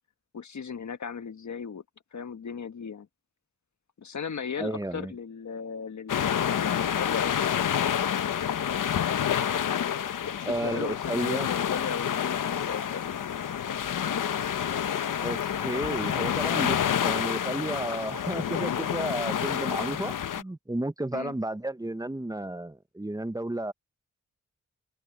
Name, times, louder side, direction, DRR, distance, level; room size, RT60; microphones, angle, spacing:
voice 1, 0.3-1.8 2.1-3.1 4.0-8.1 10.2-13.6 21.1-21.3, left 6 dB, 65° left, 1.6 m, -37 dB
voice 2, 4.6-5.1 10.4-11.5 15.2-23.7, right 1 dB, 10° right, 1.0 m, -32 dB
sound 1, 6.1-20.4, left 9 dB, 90° left, 1.0 m, -28 dB
cardioid pair, 65°, 31 cm